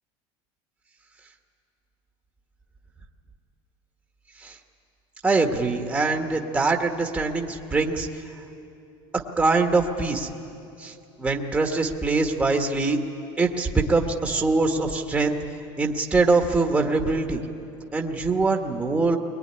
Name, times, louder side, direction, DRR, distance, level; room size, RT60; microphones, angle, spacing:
voice 1, 5.2-8.1 9.4-10.3 10.8-13.0 13.4-15.3 15.8-17.4 17.9-19.2, right 3 dB, 10° right, 3 dB, 1.4 m, -23 dB
21.5 x 21.5 x 9.9 m, 2.7 s
cardioid pair, 145°, 13 cm